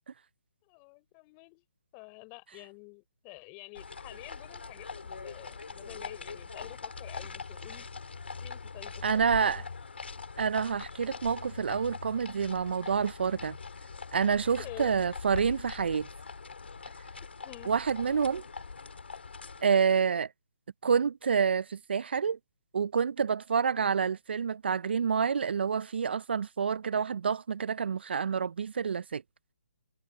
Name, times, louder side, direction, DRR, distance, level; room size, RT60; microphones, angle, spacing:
voice 1, 0.6-1.6 1.9-7.9 8.4-9.6 14.6-15.0 17.4-17.7 23.5-23.9, left 37 dB, 25° left, 4.0 m, -49 dB
sound 1, 3.7-19.6, left 4 dB, 75° left, 4.2 m, -42 dB
voice 2, 9.0-9.6 10.4-13.6 14.1-16.1 17.7-18.4 19.6-20.3 20.8-22.4 22.7-29.2, right 6 dB, 65° right, 0.4 m, -28 dB
hypercardioid pair, 145°, 6 cm